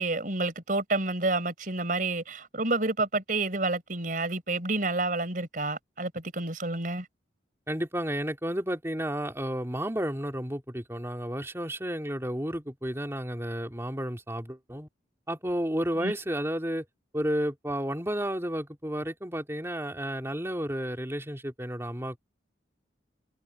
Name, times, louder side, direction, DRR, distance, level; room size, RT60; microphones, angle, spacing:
voice 1, 0.0-7.0 16.0-16.1, right 2 dB, 50° right, 4.6 m, -29 dB
voice 2, 7.7-14.9 15.3-16.8 17.1-22.2, equal, 15° right, 2.9 m, -32 dB
head